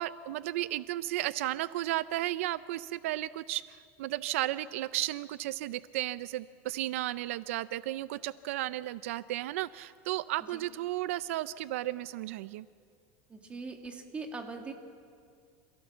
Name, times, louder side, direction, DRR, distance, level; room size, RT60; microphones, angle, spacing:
voice 1, 0.0-12.7, right 15 dB, 85° right, 16 dB, 0.5 m, -34 dB
voice 2, 13.3-14.7, right 4 dB, 15° right, 4 dB, 2.1 m, -41 dB
28.5 x 16.5 x 7.4 m, 2.3 s
supercardioid pair, 155°, 7 cm